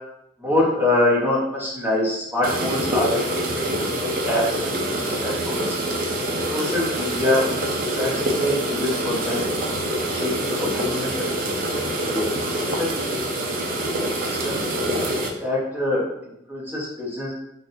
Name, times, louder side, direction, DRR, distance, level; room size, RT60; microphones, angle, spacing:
voice 1, 0.4-5.8 6.5-7.4 7.9-9.5 10.0-12.3 12.6-12.9 13.1-13.2 14.2-14.6 15.4-17.3, left 1 dB, 10° right, -7 dB, 0.9 m, -25 dB
sound 1, 2.4-15.3, right 1 dB, 45° right, 0.5 m, -25 dB
4.1 x 2.5 x 2.5 m, 0.80 s
head